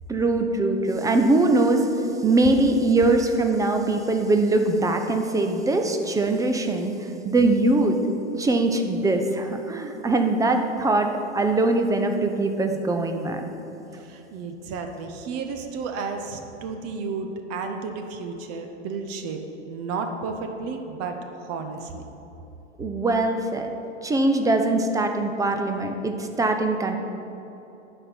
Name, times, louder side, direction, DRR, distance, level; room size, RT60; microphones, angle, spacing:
voice 1, 0.1-1.9 2.2-6.9 7.2-8.0 8.4-13.4 22.8-23.7 24.0-27.0, right 2 dB, 10° right, 5 dB, 0.5 m, -22 dB
voice 2, 14.0-19.4 19.7-22.1, right 4 dB, 40° right, 5 dB, 0.9 m, -32 dB
9.9 x 4.4 x 6.9 m, 3.0 s
hypercardioid pair, 105°, 37 cm